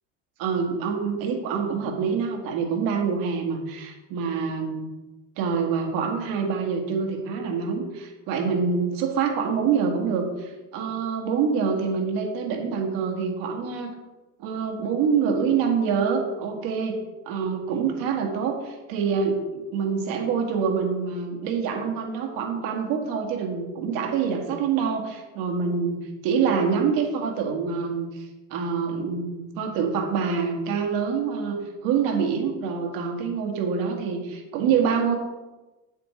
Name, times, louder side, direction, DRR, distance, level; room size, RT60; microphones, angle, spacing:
voice 1, 0.4-4.8 5.4-13.9 14.4-17.0 17.3-35.2, right 6 dB, 60° right, 2 dB, 2.0 m, -26 dB
9.4 x 8.6 x 3.3 m, 1.1 s
cardioid pair, 160°, 38 cm